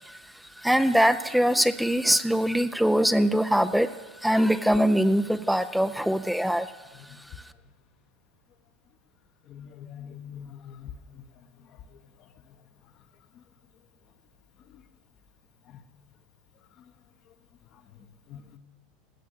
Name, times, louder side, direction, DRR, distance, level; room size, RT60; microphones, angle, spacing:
voice 1, 0.6-3.9 4.2-6.7, equal, ahead, 10 dB, 0.5 m, -22 dB
voice 2, 9.5-10.9 18.3-18.6, left 9 dB, 45° left, 9 dB, 0.9 m, -42 dB
18.5 x 8.1 x 6.4 m, 1.3 s
figure-of-eight pair, 80°, 0 cm